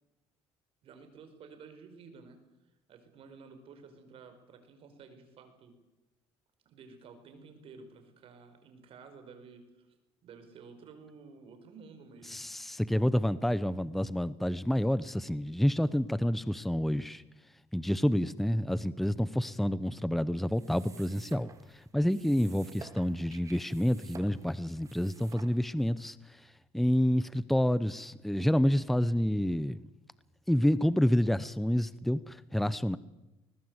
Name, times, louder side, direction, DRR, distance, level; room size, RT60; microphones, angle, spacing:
voice 1, 0.8-2.4 2.9-5.7 6.6-12.4, right 5 dB, 55° right, 4.9 m, -52 dB
voice 2, 12.3-17.2 17.7-21.5 21.7-26.2 26.7-29.8 30.5-33.0, equal, ahead, 0.7 m, -28 dB
sound 1, 20.5-25.9, right 5 dB, 30° right, 2.2 m, -52 dB
22.0 x 20.0 x 8.1 m
cardioid pair, 125°, 11 cm